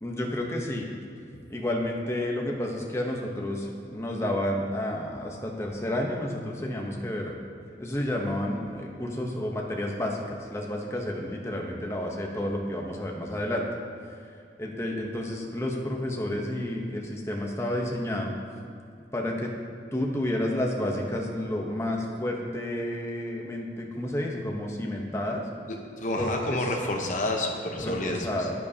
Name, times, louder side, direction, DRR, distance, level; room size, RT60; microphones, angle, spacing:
voice 1, 0.0-0.9 1.5-7.4 7.8-13.7 14.6-18.4 19.1-19.5 19.9-25.5 26.2-26.8 27.8-28.5, left 1 dB, 15° left, 0 dB, 0.9 m, -30 dB
voice 2, 26.0-28.3, left 1 dB, 45° left, 1 dB, 0.9 m, -29 dB
10.5 x 9.2 x 2.8 m, 2.5 s
head